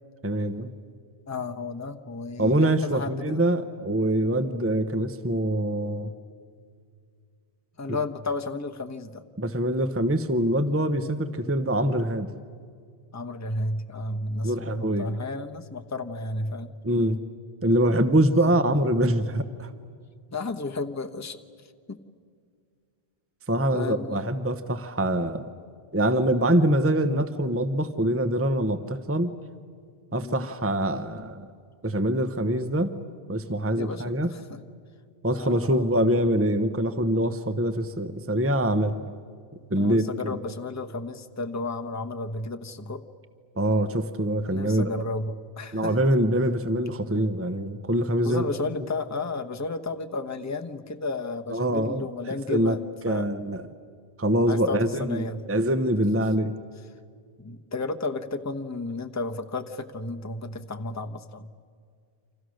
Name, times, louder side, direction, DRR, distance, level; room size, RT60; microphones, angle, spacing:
voice 1, 0.2-0.7 2.4-6.1 9.4-12.3 14.4-15.1 16.8-17.2 17.6-19.7 23.5-25.5 25.9-29.3 30.1-31.5 31.8-32.9 33.3-34.3 35.2-39.1 39.7-40.0 43.6-44.9 45.7-48.4 51.5-52.1 52.5-52.8 53.0-53.6 54.2-55.2 55.5-56.5, right 1 dB, 15° right, 10 dB, 0.9 m, -24 dB
voice 2, 1.3-3.4 7.8-9.2 13.1-16.7 18.5-18.6 20.3-22.0 23.7-24.2 30.2-30.5 33.8-34.6 35.3-35.9 39.7-43.0 44.5-46.0 48.2-53.3 54.5-55.5 56.2-56.3 57.4-61.5, left 2 dB, 15° left, 5 dB, 1.0 m, -33 dB
29.0 x 26.5 x 6.5 m, 2.2 s
omnidirectional pair, 1.1 m